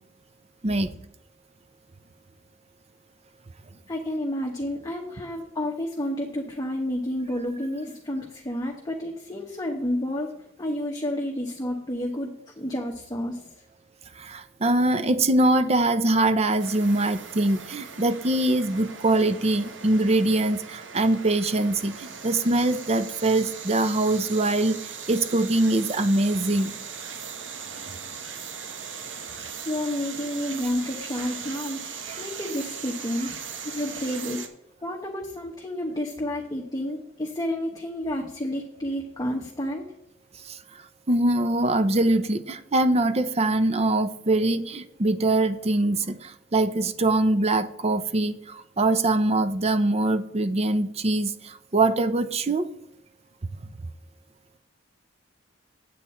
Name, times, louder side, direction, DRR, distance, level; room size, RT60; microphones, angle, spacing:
voice 1, 3.9-10.3 10.6-12.3 12.6-13.4 29.7-31.8 32.2-33.4 33.6-34.5 34.8-39.8, left 1 dB, 20° left, 1 dB, 0.9 m, -30 dB
voice 2, 14.2-24.8 25.1-26.8 32.1-32.2 40.5-40.6 41.1-52.7, right 2 dB, 35° right, 12 dB, 0.6 m, -23 dB
sound 1, 16.6-34.5, right 6 dB, 75° right, 1.2 m, -39 dB
8.4 x 8.2 x 4.3 m, 0.78 s
head